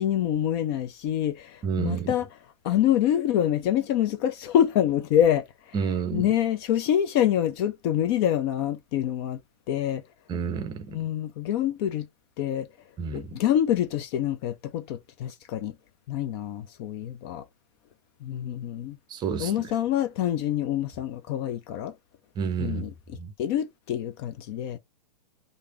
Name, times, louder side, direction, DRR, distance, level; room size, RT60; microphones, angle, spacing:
voice 1, 0.0-2.3 2.6-5.7 6.1-9.4 9.7-10.0 10.9-12.1 12.4-12.7 13.1-15.7 16.1-17.4 18.2-19.0 19.4-21.9 22.6-22.9 23.4-24.8, left 10 dB, 35° left, 0.4 m, -26 dB
voice 2, 1.6-2.1 5.7-6.3 10.3-11.0 13.0-13.4 19.1-19.7 22.4-22.9 23.1-23.3, right 6 dB, 20° right, 0.6 m, -30 dB
3.2 x 2.6 x 3.0 m
hypercardioid pair, 125°, 21 cm